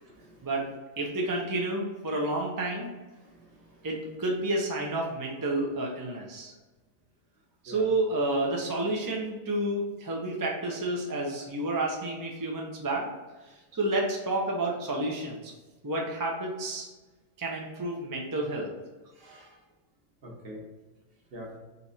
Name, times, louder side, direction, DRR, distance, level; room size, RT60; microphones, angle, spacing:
voice 1, 0.1-0.5 3.2-3.7 7.7-7.9 19.1-19.6 20.2-20.6 21.3-21.6, equal, 50° right, -3 dB, 1.3 m, -45 dB
voice 2, 1.0-2.9 3.8-6.5 7.6-13.1 13.7-15.5 15.8-16.9 17.4-18.7, right 2 dB, 25° right, -1 dB, 0.5 m, -30 dB
4.1 x 3.0 x 4.1 m, 1.2 s
omnidirectional pair, 1.3 m